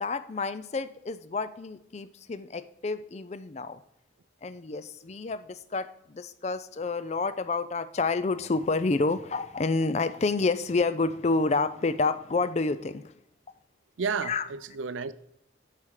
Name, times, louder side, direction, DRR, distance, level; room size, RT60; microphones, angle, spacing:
voice 1, 0.0-3.8 4.4-13.1 14.2-14.5, left 3 dB, 35° left, 0.4 m, -29 dB
voice 2, 14.0-15.1, right 5 dB, 80° right, 0.5 m, -31 dB
8.6 x 5.7 x 6.5 m
head